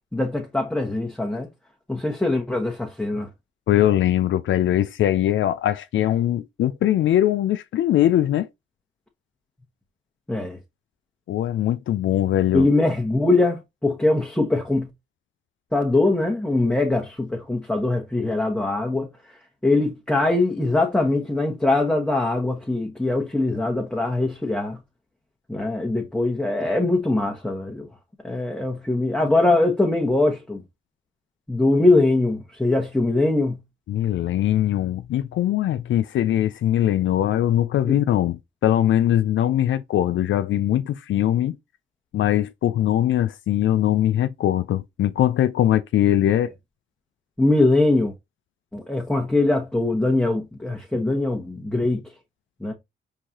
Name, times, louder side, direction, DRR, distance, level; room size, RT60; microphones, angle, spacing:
voice 1, 0.1-1.5 1.9-3.3 10.3-10.6 12.5-14.9 15.7-19.1 19.6-24.8 25.5-27.9 28.2-30.6 31.5-33.6 37.9-38.0 47.4-48.1 48.7-52.0 52.6-52.7, left 2 dB, 5° left, 1.0 m, -22 dB
voice 2, 3.7-8.5 11.3-12.7 33.9-41.6 42.1-46.5, left 12 dB, 75° left, 0.4 m, -21 dB
4.7 x 3.7 x 2.7 m
cardioid pair, 80°, 20 cm